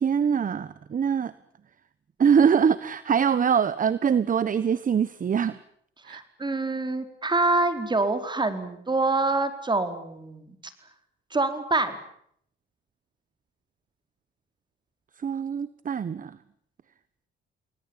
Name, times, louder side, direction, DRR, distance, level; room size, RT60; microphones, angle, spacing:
voice 1, 0.0-1.3 2.2-5.6 6.0-6.2 15.2-16.4, right 7 dB, 40° right, 16 dB, 1.2 m, -23 dB
voice 2, 6.1-10.7 11.3-12.0, right 2 dB, 20° right, 9 dB, 4.5 m, -26 dB
30.0 x 20.5 x 9.1 m, 0.69 s
cardioid pair, 90°, 20 cm